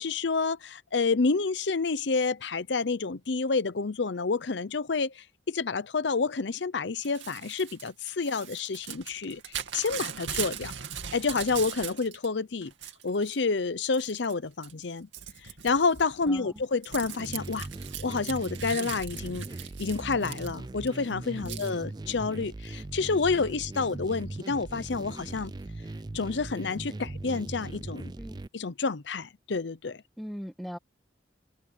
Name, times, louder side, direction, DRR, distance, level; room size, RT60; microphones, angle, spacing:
voice 1, 0.0-10.7 11.1-12.7 13.0-15.1 15.6-17.7 18.0-19.5 19.8-25.5 26.1-28.1 28.5-30.0, left 4 dB, 70° left, 0.7 m, -29 dB
Crumpling crinkling / Tearing, 7.0-12.3 12.6-13.4 13.9-14.3 14.6-20.9 21.5-21.7, right 9 dB, 85° right, 2.5 m, -39 dB
voice 2, 16.3-16.6 21.4-21.6 28.2-28.4 30.2-30.8, equal, ahead, 1.4 m, -39 dB
sound 1, 17.2-28.5, right 2 dB, 20° right, 0.4 m, -39 dB
head